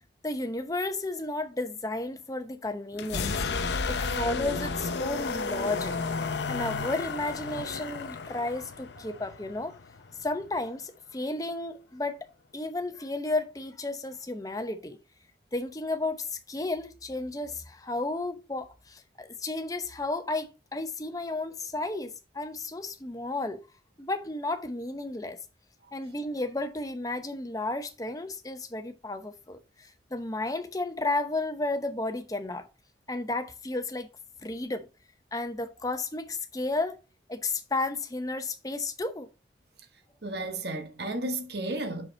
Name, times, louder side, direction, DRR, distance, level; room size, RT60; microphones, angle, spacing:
voice 1, 0.2-3.3 3.9-9.8 10.2-12.3 12.5-15.0 15.5-23.6 24.0-25.4 25.9-32.7 33.1-34.1 34.4-34.9 35.3-37.0 37.3-39.3, left 2 dB, 20° left, 0.8 m, -33 dB
sound 1, 2.9-10.7, left 4 dB, 75° left, 0.6 m, -33 dB
voice 2, 40.2-42.1, right 2 dB, 65° right, 1.2 m, -33 dB
5.9 x 5.4 x 4.2 m
head